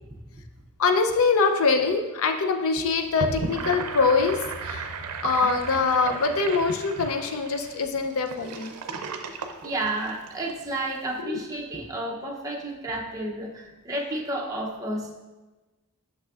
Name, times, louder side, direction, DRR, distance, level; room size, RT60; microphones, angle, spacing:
voice 1, 0.8-4.9 5.2-8.8 11.2-11.4, left 4 dB, 65° left, 6 dB, 0.5 m, -24 dB
Gurgling / Sink (filling or washing), 3.0-10.5, right 4 dB, 85° right, 0.5 m, -35 dB
voice 2, 9.6-15.1, right 1 dB, 15° right, -2 dB, 0.7 m, -31 dB
6.3 x 6.1 x 2.4 m, 1.2 s
head